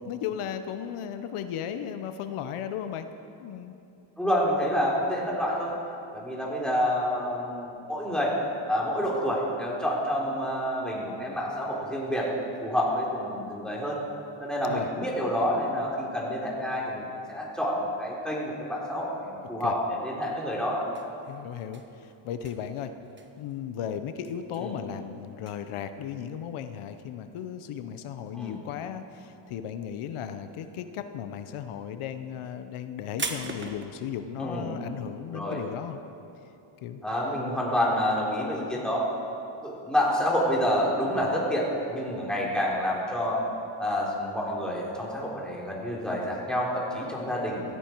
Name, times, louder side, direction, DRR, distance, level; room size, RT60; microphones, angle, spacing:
voice 1, 0.0-3.1 3.4-3.8 14.7-14.9 19.6-19.7 21.3-22.9 23.4-36.0 36.8-37.0, left 9 dB, 90° left, 9 dB, 0.9 m, -35 dB
voice 2, 4.2-5.7 6.1-8.3 8.7-12.3 12.6-14.0 14.4-20.8 24.6-24.7 28.3-28.6 34.4-34.8 35.3-35.6 37.0-39.0 39.6-43.4 43.8-47.6, equal, ahead, -5 dB, 3.7 m, -28 dB
sound 1, 20.8-28.7 29.0-29.7 29.9-33.9, right 4 dB, 25° right, 1.2 m, -41 dB
16.0 x 16.0 x 4.6 m, 2.8 s
cardioid pair, 110°, 49 cm